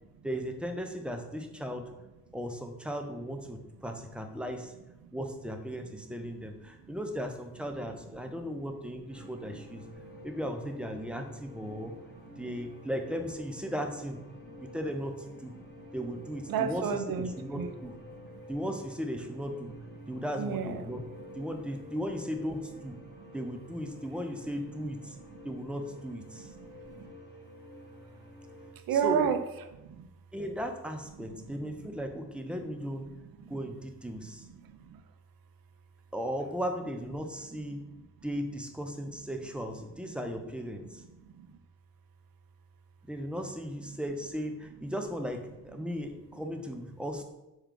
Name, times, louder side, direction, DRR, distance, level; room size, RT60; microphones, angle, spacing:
voice 1, 0.2-1.9 2.3-4.7 5.1-9.8 10.2-11.9 12.4-14.2 14.7-15.5 15.9-16.8 17.4-17.9 18.5-19.7 20.1-21.0 21.4-22.9 23.3-25.2 25.4-26.5 29.0-29.3 30.3-33.1 33.5-34.5 36.1-37.8 38.2-41.0 43.1-47.2, equal, ahead, 4 dB, 0.5 m, -36 dB
sound 1, 9.1-28.7, left 1 dB, 25° left, 1.1 m, -50 dB
voice 2, 9.2-9.6 10.0-10.3 11.7-12.5 15.5-15.9 16.5-17.7 18.3-18.4 20.0-20.1 20.3-21.1 21.4-21.5 23.0-23.4 25.1-25.4 26.3-27.1 28.9-29.4 29.7-30.1 31.2-31.9 32.4-32.6 32.8-32.9 33.4-33.5 34.2-35.0 37.5-38.1 40.8-41.6 45.9-46.0, right 7 dB, 55° right, 9 dB, 0.5 m, -35 dB
4.5 x 2.3 x 3.7 m, 0.99 s
hypercardioid pair, 45°, 44 cm